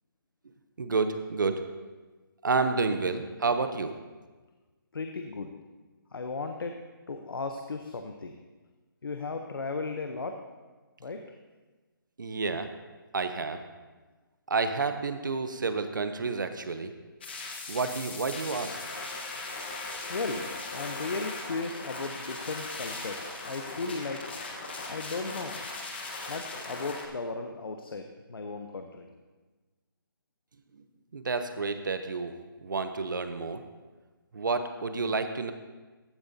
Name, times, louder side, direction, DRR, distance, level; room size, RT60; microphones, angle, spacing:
voice 1, 0.8-1.7 2.4-4.0 12.2-12.7 13.1-13.6 14.5-16.9 17.7-18.8 31.1-33.6 34.3-35.5, right 4 dB, 60° right, 9 dB, 0.7 m, -30 dB
voice 2, 4.9-5.5 6.1-6.8 7.1-8.4 9.0-10.4 11.0-11.2 20.1-24.5 24.9-25.6 26.3-29.1, left 3 dB, 75° left, 5 dB, 0.8 m, -36 dB
sound 1, 17.2-27.1, left 3 dB, 25° left, 1.1 m, -38 dB
14.5 x 8.8 x 2.7 m, 1.3 s
hypercardioid pair, 175°, 12 cm